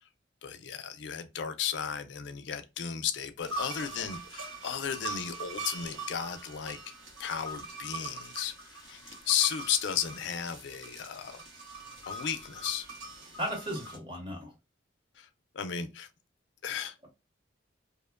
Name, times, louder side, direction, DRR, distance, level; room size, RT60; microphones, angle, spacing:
voice 1, 0.4-6.8 7.2-11.4 12.1-12.9 15.2-15.3 15.5-16.1 16.6-16.9, left 8 dB, 65° left, 0.4 m, -34 dB
sound 1, 3.4-14.0, right 3 dB, 85° right, 0.9 m, -42 dB
voice 2, 13.4-14.5, equal, 25° right, 0.9 m, -35 dB
2.8 x 2.1 x 2.2 m
head